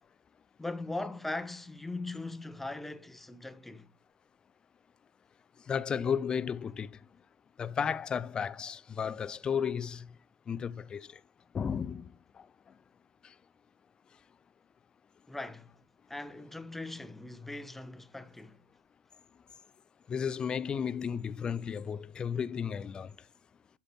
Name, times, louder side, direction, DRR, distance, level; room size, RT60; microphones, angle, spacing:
voice 1, 0.6-3.9 15.3-15.7 16.1-18.6, left 2 dB, 5° left, 0.8 m, -40 dB
voice 2, 5.7-7.0 7.6-10.1 10.5-11.2 11.5-12.1 12.4-12.5 13.2-13.3 20.1-23.1, left 7 dB, 25° left, 0.5 m, -33 dB
11.5 x 5.9 x 4.4 m
figure-of-eight pair, 85°, 4 cm